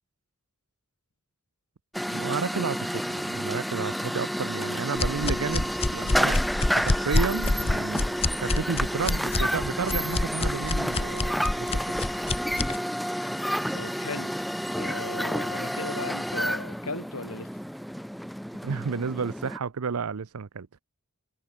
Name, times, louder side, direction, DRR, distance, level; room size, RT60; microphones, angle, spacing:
sound 1, 1.9-19.6, equal, ahead, 0.4 m, -30 dB
voice 1, 2.1-6.4 6.7-11.9 18.6-20.7, right 5 dB, 80° right, 0.6 m, -32 dB
sound 2, 5.0-12.8, left 2 dB, 25° left, 0.8 m, -27 dB
voice 2, 13.7-14.4 14.8-17.5, left 3 dB, 85° left, 5.2 m, -37 dB
head